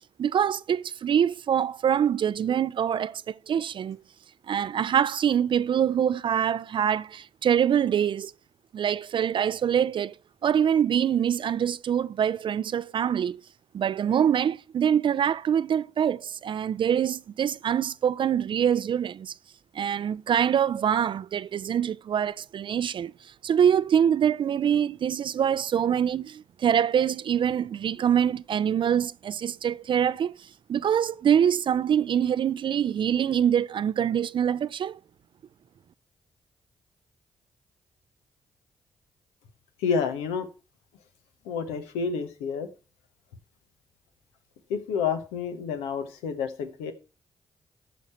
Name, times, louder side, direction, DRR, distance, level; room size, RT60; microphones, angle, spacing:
voice 1, 0.2-3.2 3.5-4.0 4.5-8.3 8.7-10.1 10.4-13.4 13.7-19.3 19.8-23.1 23.4-30.3 30.7-35.0, right 8 dB, 55° right, 0.4 m, -24 dB
voice 2, 39.8-40.5 41.5-42.7 44.7-46.9, left 6 dB, 90° left, 0.9 m, -29 dB
13.5 x 5.1 x 4.2 m
hypercardioid pair, 45°, 10 cm